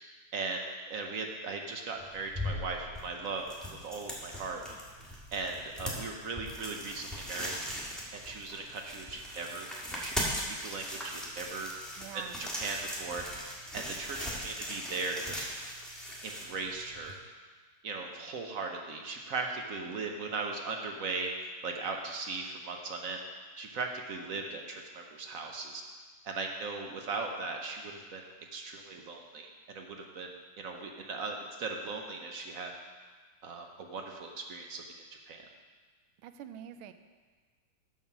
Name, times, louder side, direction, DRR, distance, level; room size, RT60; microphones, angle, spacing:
voice 1, 0.3-4.6 5.3-7.5 8.1-11.7 12.1-15.5 16.2-17.2 17.8-23.2 23.6-25.8 26.2-30.3 30.6-32.7 33.4-34.8 35.3-35.4, right 3 dB, 60° right, 2 dB, 0.9 m, -38 dB
sound 1, 2.0-17.1, equal, ahead, 1.3 m, -40 dB
voice 2, 12.0-12.4 36.2-36.9, right 10 dB, 80° right, 10 dB, 1.4 m, -45 dB
7.3 x 7.1 x 6.0 m, 1.5 s
omnidirectional pair, 2.3 m